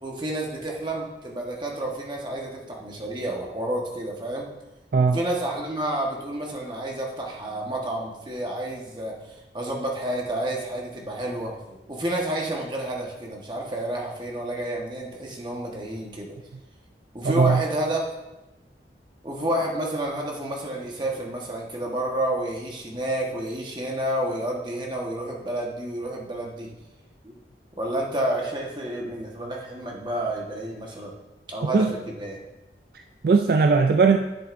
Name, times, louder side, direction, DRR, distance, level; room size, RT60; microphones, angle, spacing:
voice 1, 0.0-4.5 5.1-16.4 17.1-18.0 19.2-26.7 27.2-27.4 27.8-31.1 31.5-32.4, right 1 dB, 25° right, -1 dB, 1.3 m, -30 dB
voice 2, 17.2-17.6 31.7-31.9 32.9-34.2, right 4 dB, 55° right, 6 dB, 0.3 m, -19 dB
10.0 x 7.6 x 2.6 m, 1.0 s
head